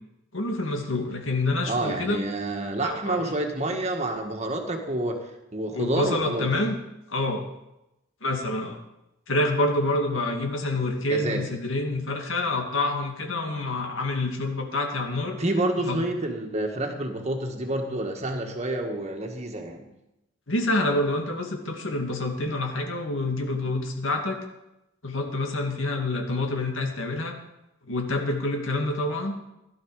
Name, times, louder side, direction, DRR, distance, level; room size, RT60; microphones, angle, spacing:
voice 1, 0.3-2.2 2.8-3.2 5.7-6.8 7.1-7.4 8.2-8.8 9.3-15.4 15.9-16.0 20.5-24.4 25.0-27.4 27.9-29.3, left 2 dB, 70° left, 3 dB, 2.2 m, -27 dB
voice 2, 1.6-5.2 5.5-6.5 11.1-11.5 15.4-19.9, right 1 dB, 35° right, 4 dB, 1.7 m, -28 dB
16.0 x 11.5 x 4.9 m, 0.91 s
head